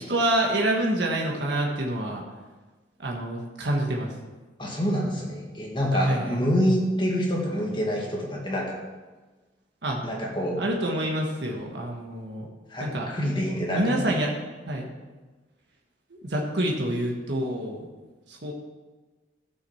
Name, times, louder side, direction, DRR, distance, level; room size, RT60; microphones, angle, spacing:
voice 1, 0.1-2.2 3.0-4.1 5.9-6.4 9.8-10.0 10.6-12.4 12.8-13.1 13.7-14.3 14.7-14.9 16.2-17.9 18.3-18.5, right 1 dB, 65° right, 0 dB, 1.5 m, -27 dB
voice 2, 4.6-8.8 10.0-10.6 12.7-14.0, equal, 25° left, -2 dB, 2.0 m, -26 dB
14.0 x 6.3 x 5.7 m, 1.3 s
head